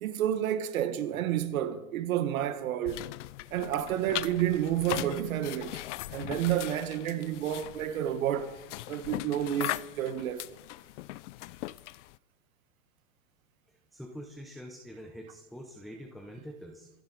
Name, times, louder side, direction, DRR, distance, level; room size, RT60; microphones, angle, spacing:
voice 1, 0.0-3.1 3.5-5.8 6.1-8.5 8.9-10.5, right 11 dB, 70° right, 1.5 m, -30 dB
sound 1, 2.9-12.2, left 17 dB, 55° left, 0.5 m, -39 dB
voice 2, 13.9-16.9, equal, ahead, 0.6 m, -45 dB
26.0 x 10.5 x 4.0 m
supercardioid pair, 160°, 44 cm